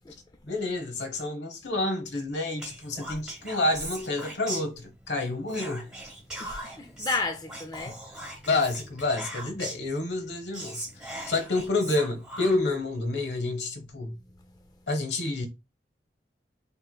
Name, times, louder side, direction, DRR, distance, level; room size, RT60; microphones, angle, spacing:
voice 1, 0.5-5.9 8.5-10.9 11.3-14.2 14.9-15.5, left 2 dB, 75° left, 1.0 m, -29 dB
Whispering, 2.6-5.1 5.5-9.9 10.3-10.4 10.5-12.8, right 1 dB, 5° right, 1.2 m, -39 dB
voice 2, 6.4-8.0 8.4-8.5 14.1-14.8, left 3 dB, 20° left, 0.4 m, -34 dB
6.5 x 3.1 x 2.3 m
head